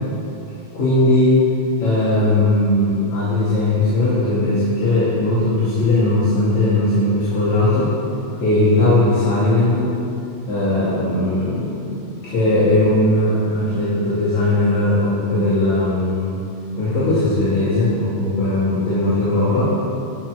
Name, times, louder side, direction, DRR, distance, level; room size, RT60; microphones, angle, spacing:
voice 1, 0.7-1.4 1.8-7.9 8.4-9.9 10.5-11.8 12.2-16.4 16.8-19.7, left 1 dB, 70° left, -10 dB, 3.6 m, -18 dB
11.5 x 6.6 x 6.2 m, 2.6 s
omnidirectional pair, 3.4 m